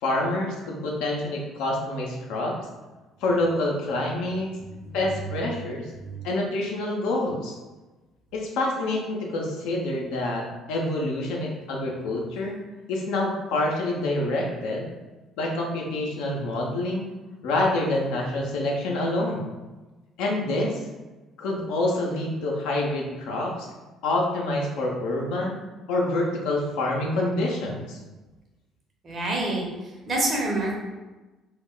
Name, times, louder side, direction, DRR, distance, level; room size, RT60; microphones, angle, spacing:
voice 1, 0.0-2.6 3.2-4.5 4.9-5.8 6.2-7.6 8.3-12.6 12.9-14.9 15.4-17.1 17.4-19.4 20.2-20.8 21.4-23.7 24.0-25.6 25.9-28.0, left 2 dB, 80° left, -1 dB, 0.6 m, -27 dB
voice 2, 4.6-5.0 6.0-6.2 29.0-30.8, right 2 dB, 45° right, -1 dB, 0.8 m, -28 dB
2.3 x 2.1 x 3.7 m, 1.2 s
supercardioid pair, 70°, 0 cm